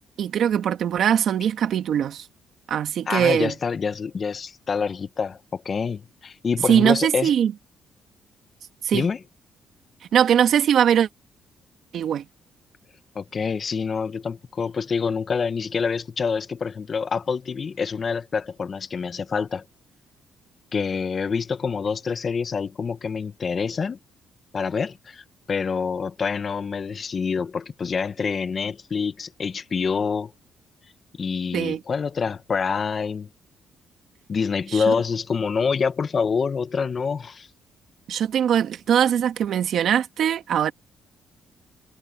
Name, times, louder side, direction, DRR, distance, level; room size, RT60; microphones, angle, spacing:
voice 1, 0.2-2.3 2.7-3.5 6.7-7.5 8.8-9.1 10.1-11.1 11.9-12.2 31.5-31.8 34.7-34.9 38.1-40.7, right 9 dB, 70° right, 1.8 m, -21 dB
voice 2, 3.1-7.3 8.9-9.2 13.1-19.6 20.7-24.0 24.5-30.3 31.2-33.3 34.3-37.5, left 5 dB, 45° left, 1.1 m, -26 dB
cardioid pair, 90°, 0 cm